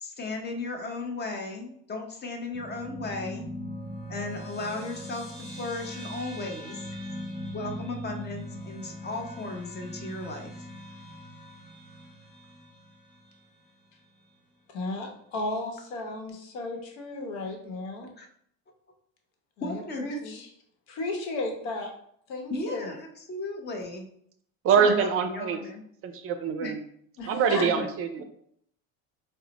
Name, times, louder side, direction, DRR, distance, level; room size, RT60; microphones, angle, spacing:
voice 1, 0.0-3.5 4.1-6.8 7.5-10.5 18.2-18.3 19.6-20.4 22.5-24.1 24.8-25.8 26.6-26.8 27.6-27.9, left 2 dB, 25° left, 4 dB, 0.5 m, -35 dB
sound 1, 2.5-13.3, equal, ahead, 1.0 m, -40 dB
voice 2, 14.7-18.1 19.6-20.5 20.9-21.9 22.3-22.9 27.2-27.7, left 2 dB, 75° left, 2 dB, 1.0 m, -34 dB
voice 3, 24.6-25.6 26.0-26.8 27.3-28.2, right 6 dB, 35° right, 8 dB, 0.4 m, -24 dB
3.9 x 2.1 x 2.8 m, 0.68 s
supercardioid pair, 105°, 40 cm